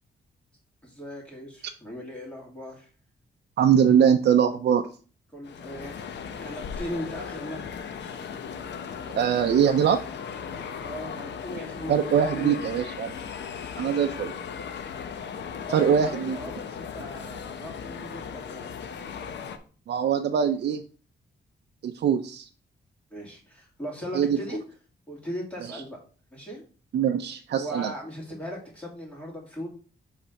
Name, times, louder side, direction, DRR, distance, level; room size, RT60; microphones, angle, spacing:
voice 1, 0.8-2.9 5.3-5.9 6.3-7.7 10.8-12.6 15.7-18.7 23.1-24.6 25.1-26.0 26.3-26.6 27.6-29.7, equal, 5° left, -3 dB, 2.5 m, -38 dB
voice 2, 3.6-4.9 9.1-10.0 11.9-13.1 13.8-14.3 15.7-16.4 19.9-20.8 21.8-22.5 24.1-24.4 26.9-27.9, right 8 dB, 70° right, 5 dB, 0.5 m, -22 dB
sound 1, 5.4-19.6, left 6 dB, 90° left, 0.8 m, -37 dB
7.0 x 3.3 x 5.2 m, 0.39 s
wide cardioid pair, 145°, 18 cm